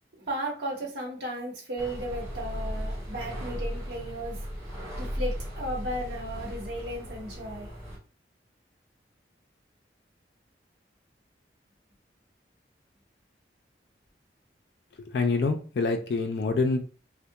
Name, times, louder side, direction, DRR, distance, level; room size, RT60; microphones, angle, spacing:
voice 1, 0.2-4.5 5.0-7.7, right 1 dB, 80° right, -3 dB, 1.0 m, -35 dB
sound 1, 1.8-8.0, equal, 40° right, 1.3 m, -36 dB
voice 2, 15.1-16.8, left 3 dB, 70° left, 5 dB, 0.4 m, -26 dB
2.2 x 2.2 x 2.7 m, 0.36 s
head